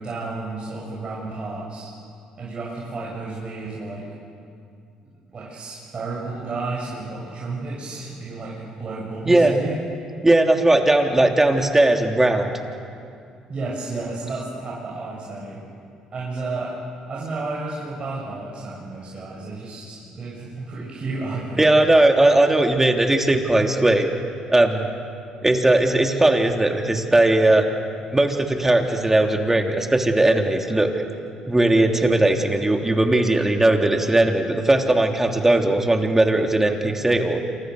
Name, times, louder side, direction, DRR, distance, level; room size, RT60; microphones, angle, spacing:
voice 1, 0.0-1.9 2.4-4.0 5.0-9.8 13.5-15.6 16.1-16.7 17.1-21.7, right 3 dB, 40° right, -6 dB, 7.5 m, -32 dB
voice 2, 10.2-12.5 21.6-24.1 24.5-24.9 25.4-27.6 28.1-30.9 31.5-37.4, right 2 dB, 15° right, 3 dB, 3.3 m, -18 dB
28.5 x 25.0 x 6.7 m, 2.4 s
supercardioid pair, 65°, 3 cm